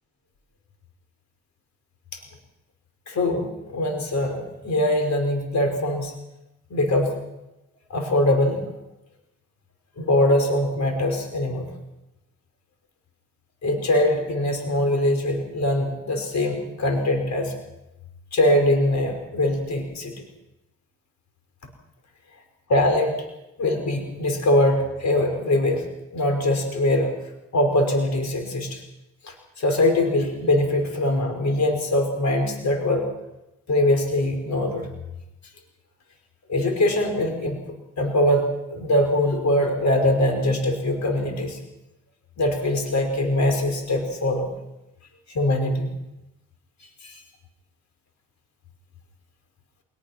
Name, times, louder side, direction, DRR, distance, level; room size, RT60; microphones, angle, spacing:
voice 1, 3.1-6.1 6.7-7.1 7.9-8.6 10.0-11.7 13.6-17.6 18.3-20.1 22.7-23.2 23.6-25.8 26.1-27.1 27.5-28.8 29.2-33.1 33.7-34.9 36.5-37.6 38.0-41.6 42.4-44.5 45.3-45.9 47.0-47.2, left 1 dB, 55° left, 4 dB, 5.4 m, -22 dB
27.0 x 19.0 x 6.0 m, 0.93 s
supercardioid pair, 60°, 33 cm